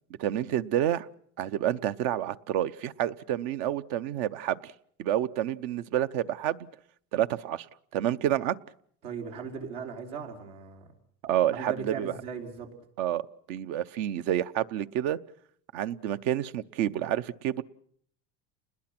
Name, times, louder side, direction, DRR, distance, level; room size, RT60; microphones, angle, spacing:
voice 1, 0.2-1.1 1.4-4.7 5.0-6.7 7.1-7.7 7.9-8.6 11.2-12.1 13.0-13.2 13.5-15.2 15.7-17.6, right 11 dB, 70° right, 13 dB, 0.9 m, -29 dB
voice 2, 9.0-10.9 11.5-12.7, right 6 dB, 85° right, 1 dB, 4.8 m, -38 dB
29.0 x 21.0 x 6.0 m, 0.63 s
supercardioid pair, 130°, 36 cm